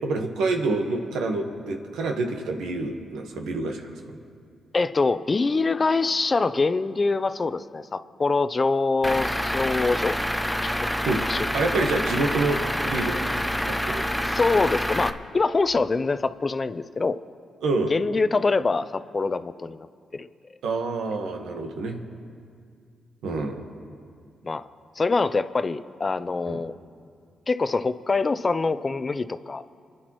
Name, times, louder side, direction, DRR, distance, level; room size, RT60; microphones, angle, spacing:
voice 1, 0.0-4.2 11.1-11.2 11.5-14.1 17.6-17.9 20.6-22.0 23.2-23.6 26.5-26.6, right 3 dB, 80° right, 4 dB, 1.3 m, -27 dB
voice 2, 4.7-10.2 10.6-10.9 11.2-11.5 14.2-17.2 17.9-19.9 20.1-20.3 24.4-24.7 25.0-26.7 27.5-29.6, left 3 dB, 35° left, 13 dB, 0.5 m, -24 dB
Truck / Idling, 9.0-15.1, equal, ahead, 0.7 m, -27 dB
29.0 x 10.5 x 3.1 m, 2.3 s
supercardioid pair, 50°, 0 cm